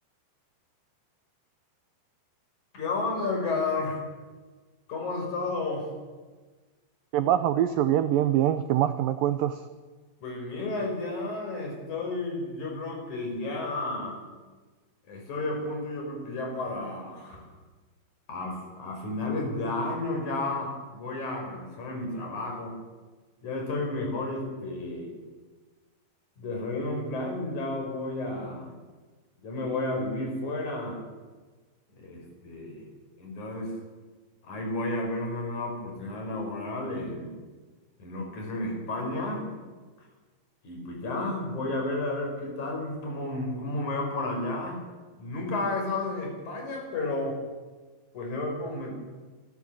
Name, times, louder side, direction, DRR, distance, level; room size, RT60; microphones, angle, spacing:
voice 1, 2.7-4.0 4.9-5.9 10.2-14.2 15.1-17.5 18.3-22.8 23.4-25.1 26.4-28.7 29.4-31.0 31.9-32.8 33.2-33.8 34.4-37.3 38.0-39.4 40.6-44.8 45.2-47.4 48.1-49.0, left 2 dB, 45° left, 1 dB, 6.3 m, -32 dB
voice 2, 7.1-9.6, right 11 dB, 90° right, 11 dB, 1.9 m, -24 dB
27.5 x 13.0 x 7.6 m, 1.3 s
omnidirectional pair, 5.0 m